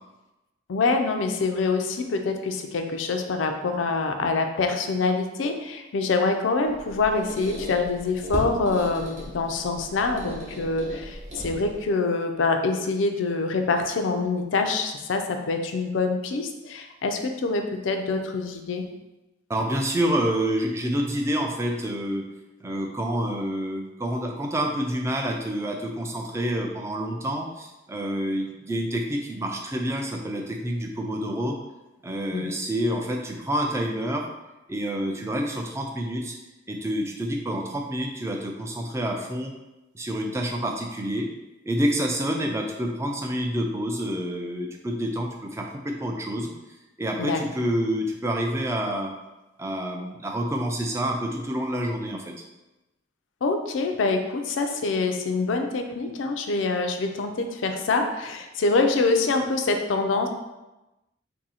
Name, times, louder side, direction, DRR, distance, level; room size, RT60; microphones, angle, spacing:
voice 1, 0.7-18.8 32.3-32.5 47.2-47.4 53.4-60.3, left 3 dB, 85° left, 5 dB, 0.4 m, -25 dB
Squeak, 6.7-11.9, equal, 35° right, 0.8 m, -37 dB
voice 2, 19.5-22.2 22.6-31.6 32.0-34.3 34.7-36.4 36.7-39.5 39.9-41.3 41.7-46.5 47.0-49.1 49.6-52.3, equal, 15° right, 1 dB, 0.3 m, -28 dB
2.7 x 2.7 x 4.1 m, 1.0 s
head